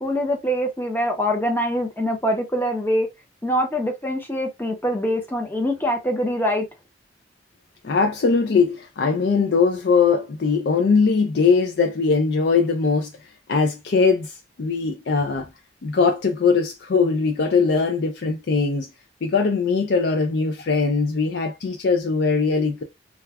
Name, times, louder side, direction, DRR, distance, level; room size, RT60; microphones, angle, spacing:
voice 1, 0.0-3.1 3.4-6.6, equal, 10° left, 0.7 m, -24 dB
voice 2, 7.8-13.1 13.5-15.5 15.8-18.9 19.2-22.8, left 4 dB, 60° left, 0.4 m, -20 dB
2.4 x 2.2 x 3.3 m
head